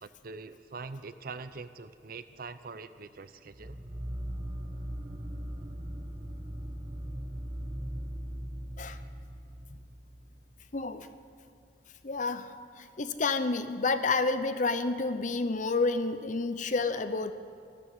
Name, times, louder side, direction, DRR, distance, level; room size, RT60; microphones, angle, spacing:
voice 1, 0.0-3.8, right 4 dB, 55° right, 12 dB, 0.6 m, -43 dB
sound 1, 3.5-10.8, equal, 25° right, 1.2 m, -39 dB
voice 2, 10.7-11.1 12.0-17.3, left 3 dB, 45° left, 11 dB, 0.7 m, -30 dB
14.5 x 12.5 x 7.4 m, 2.3 s
head